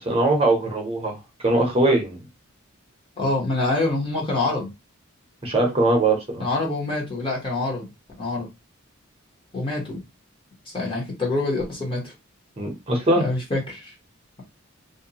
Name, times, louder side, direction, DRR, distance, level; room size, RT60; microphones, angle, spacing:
voice 1, 0.0-1.1 1.4-2.2 5.4-6.4 12.6-13.3, right 2 dB, 25° right, 1 dB, 0.7 m, -21 dB
voice 2, 3.2-4.7 6.4-7.9 8.2-8.5 9.5-10.0 10.7-12.1 13.1-13.9, left 2 dB, 25° left, -3 dB, 0.9 m, -26 dB
2.6 x 2.2 x 2.8 m, 0.23 s
head